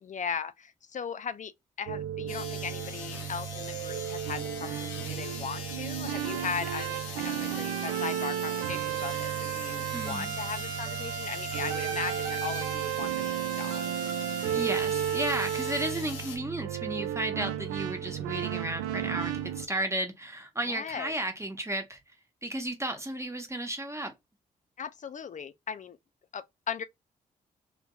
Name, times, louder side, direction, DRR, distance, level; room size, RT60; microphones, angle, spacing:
voice 1, 0.0-1.5 1.8-13.1 13.6-13.8 20.7-21.1 24.8-26.0 26.3-26.8, left 6 dB, 40° left, 0.5 m, -38 dB
sound 1, 1.9-19.7, right 10 dB, 80° right, 0.5 m, -33 dB
sound 2, 2.3-16.4, left 5 dB, 75° left, 0.9 m, -42 dB
voice 2, 9.9-10.4 14.4-22.0 22.4-24.1, right 1 dB, 15° right, 1.1 m, -33 dB
2.9 x 2.8 x 2.3 m
hypercardioid pair, 40°, 19 cm